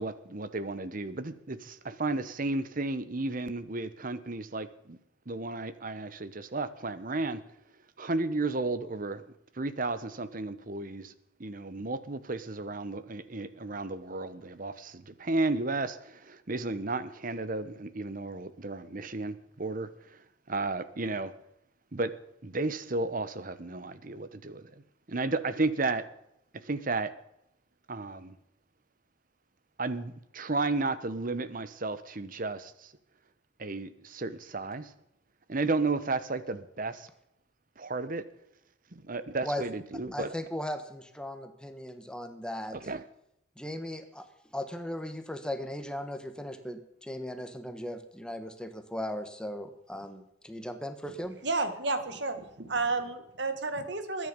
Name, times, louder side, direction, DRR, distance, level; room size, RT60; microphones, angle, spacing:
voice 1, 0.0-5.0 5.3-7.4 8.0-9.2 9.5-11.1 11.4-20.2 20.5-21.3 21.9-22.1 22.4-24.8 25.1-26.1 26.6-27.1 27.9-28.4 29.8-32.9 33.6-34.9 35.5-37.1 37.8-38.3 38.9-40.3 42.7-43.0, right 3 dB, 45° right, 1.1 m, -33 dB
voice 2, 40.1-42.8 43.6-44.3 44.5-51.4, left 1 dB, 5° left, 1.4 m, -37 dB
voice 3, 51.4-54.3, right 3 dB, 60° right, 1.9 m, -31 dB
21.5 x 9.9 x 5.3 m
head